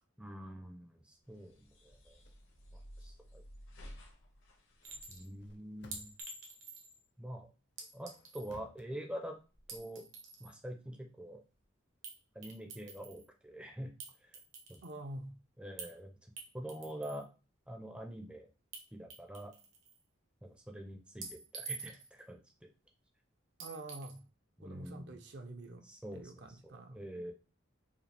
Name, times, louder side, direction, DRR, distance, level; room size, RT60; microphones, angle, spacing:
voice 1, 0.2-2.2 2.7-3.4 5.1-6.1 7.2-7.5 7.9-9.4 9.7-10.0 10.4-11.4 12.3-13.9 14.7-14.8 15.6-16.1 16.5-17.3 17.7-18.5 18.9-19.5 20.4-22.4 24.6-25.2 25.8-27.3, right 1 dB, 5° right, 0.5 m, -45 dB
sound 1, 1.2-6.2, equal, 80° left, 1.2 m, -55 dB
sound 2, 2.0-2.4 5.3-6.3 7.8-8.9, left 1 dB, 60° left, 0.7 m, -58 dB
Chink clink, 4.8-5.3 5.9-7.0 7.8-8.5 9.5-10.5 12.0-12.2 12.4-13.2 14.0-15.0 15.8-15.9 16.4-17.2 18.7-18.8 19.1-20.0 21.2-22.2 23.6-24.2, right 4 dB, 75° right, 1.0 m, -47 dB
voice 2, 14.8-15.3 23.6-24.2 24.6-27.0, right 1 dB, 55° right, 0.6 m, -47 dB
4.9 x 2.4 x 3.3 m
head